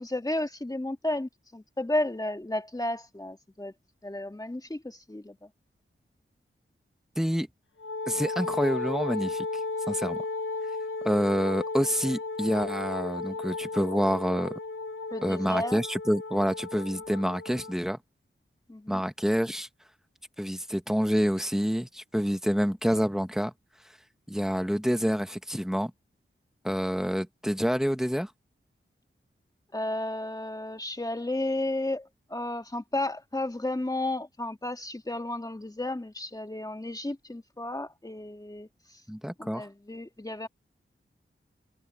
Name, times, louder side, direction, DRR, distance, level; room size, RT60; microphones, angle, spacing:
voice 1, 0.0-3.7 4.0-5.5 15.1-15.8 18.7-19.0 29.7-39.0 39.4-40.5, left 1 dB, 15° left, 2.4 m, -33 dB
voice 2, 7.2-7.5 8.1-9.5 9.9-10.2 11.0-14.6 15.2-18.0 18.9-19.7 20.4-23.5 24.3-25.9 26.6-28.3 39.1-39.7, equal, ahead, 1.5 m, -27 dB
Wind instrument woodwind instrument, 7.8-17.8, left 3 dB, 70° left, 1.1 m, -34 dB
wide cardioid pair, 80°, 21 cm